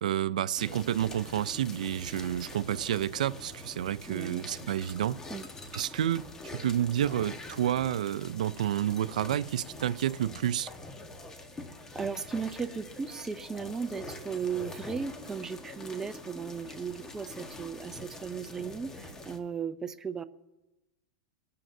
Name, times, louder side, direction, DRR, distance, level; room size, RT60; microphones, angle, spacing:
voice 1, 0.0-5.2 5.7-6.3 6.5-10.7, right 11 dB, 90° right, 0.4 m, -30 dB
sound 1, 0.6-19.4, left 2 dB, 15° left, 1.2 m, -45 dB
voice 2, 4.1-4.4 5.3-5.5 11.9-20.2, right 6 dB, 15° right, 0.5 m, -36 dB
23.5 x 12.5 x 2.7 m
supercardioid pair, 145°, 4 cm